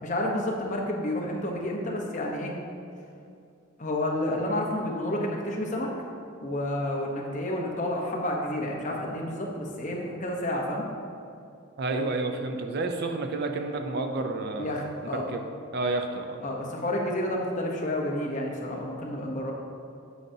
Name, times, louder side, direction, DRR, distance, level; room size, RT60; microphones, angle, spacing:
voice 1, 0.0-2.5 3.8-5.9 6.4-10.8 14.6-15.2 16.4-19.5, left 1 dB, 35° left, -1 dB, 0.9 m, -30 dB
voice 2, 11.8-14.8 15.1-15.4 15.7-16.4, right 3 dB, 50° right, 5 dB, 0.5 m, -30 dB
9.2 x 6.4 x 2.8 m, 2.5 s
head